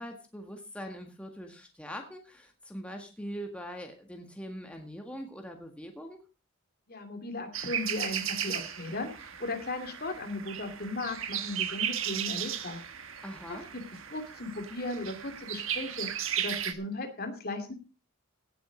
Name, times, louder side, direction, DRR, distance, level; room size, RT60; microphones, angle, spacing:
voice 1, 0.0-6.2 13.2-13.7, equal, 5° left, 3 dB, 1.7 m, -42 dB
voice 2, 6.9-12.8 13.5-13.8 14.1-17.7, left 2 dB, 45° left, 6 dB, 2.6 m, -37 dB
sound 1, 7.5-16.7, right 9 dB, 70° right, 1.4 m, -36 dB
17.0 x 7.7 x 5.0 m, 0.32 s
head